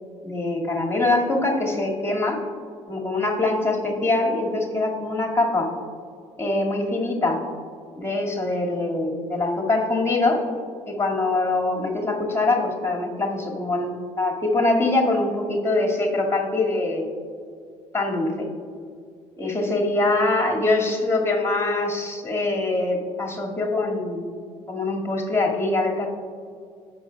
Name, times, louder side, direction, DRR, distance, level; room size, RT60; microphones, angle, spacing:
voice 1, 0.2-2.4 2.9-5.7 6.4-7.4 8.0-10.4 10.9-17.1 17.9-18.5 19.4-24.3 24.7-26.1, left 2 dB, 15° left, -1 dB, 2.2 m, -23 dB
15.5 x 6.1 x 2.3 m, 2.2 s
hypercardioid pair, 55°, 17 cm